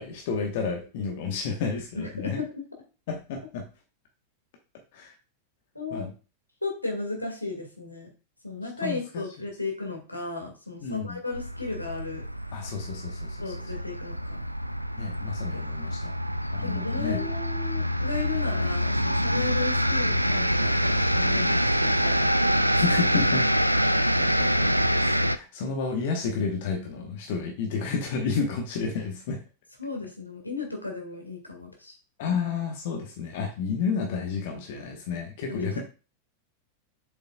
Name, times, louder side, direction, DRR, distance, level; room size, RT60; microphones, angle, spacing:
voice 1, 0.0-2.4 3.1-3.6 4.9-5.1 5.9-6.1 8.8-9.2 10.8-11.2 12.5-13.5 15.0-16.1 16.5-17.3 19.3-19.4 22.7-23.5 24.2-29.4 32.2-35.8, left 5 dB, 50° left, 2 dB, 1.2 m, -31 dB
voice 2, 2.0-2.5 5.8-6.0 6.6-8.1 8.4-12.2 13.4-14.4 15.5-15.6 16.6-22.3 29.8-31.9 35.5-35.6, left 3 dB, 85° left, 1 dB, 1.9 m, -35 dB
sound 1, 11.3-25.4, equal, 90° right, 0.3 m, -25 dB
7.3 x 5.7 x 2.4 m, 0.33 s
figure-of-eight pair, 90°, 0 cm